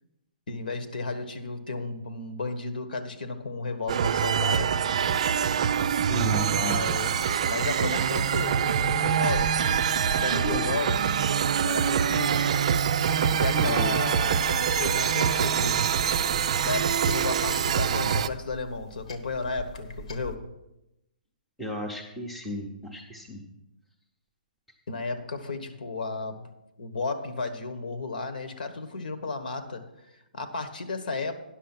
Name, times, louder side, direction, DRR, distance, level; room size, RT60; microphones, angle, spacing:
voice 1, 0.5-4.7 5.9-9.6 10.0-11.0 11.6-12.5 13.2-16.3 16.6-20.5 24.9-26.5 26.8-31.3, left 3 dB, 70° left, 9 dB, 1.4 m, -33 dB
sound 1, 3.9-18.3, right 8 dB, 45° right, 0.4 m, -25 dB
voice 2, 6.1-6.8 10.4-10.7 13.5-13.9 21.6-23.4, left 1 dB, ahead, -1 dB, 0.7 m, -34 dB
sound 2, 14.3-20.4, left 1 dB, 45° left, 1.1 m, -44 dB
10.0 x 6.5 x 5.9 m, 0.91 s
hypercardioid pair, 170°, 5 cm